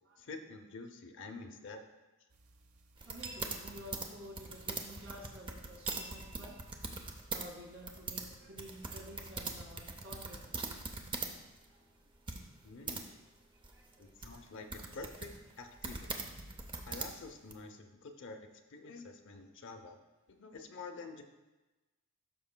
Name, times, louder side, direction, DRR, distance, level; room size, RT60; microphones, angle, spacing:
voice 1, 0.2-1.8 12.6-13.1 14.0-16.3 16.8-20.0 20.3-21.2, left 3 dB, 55° left, 5 dB, 0.7 m, -48 dB
sound 1, 2.3-8.4, right 4 dB, 75° right, 0.8 m, -53 dB
sound 2, 3.0-7.5 7.7-11.3 11.6-11.7 12.3-13.0 13.6-17.5, right 3 dB, 20° right, 0.6 m, -42 dB
voice 2, 3.1-6.6 7.2-10.5 11.7-11.8 13.7-14.1, equal, 60° right, -1 dB, 1.8 m, -51 dB
12.5 x 5.8 x 2.2 m, 1.1 s
head